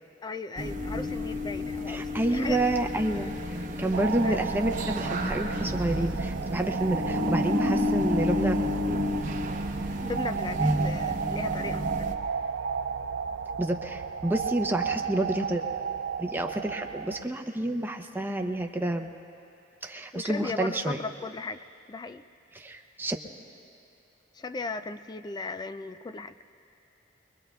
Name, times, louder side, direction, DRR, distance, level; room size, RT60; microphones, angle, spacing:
voice 1, 0.2-2.7 4.2-4.5 10.0-12.1 20.1-21.6 21.9-22.2 24.3-26.3, left 3 dB, 20° left, 10 dB, 0.3 m, -37 dB
sound 1, 0.6-12.1, left 1 dB, 45° right, 0.9 m, -30 dB
voice 2, 1.9-8.6 13.6-15.6 16.2-19.1 19.8-21.0 22.5-23.2, right 1 dB, 10° right, 4 dB, 0.7 m, -29 dB
sound 2, 3.9-17.3, right 7 dB, 75° right, 0.4 m, -34 dB
23.5 x 22.5 x 2.3 m, 2.7 s
head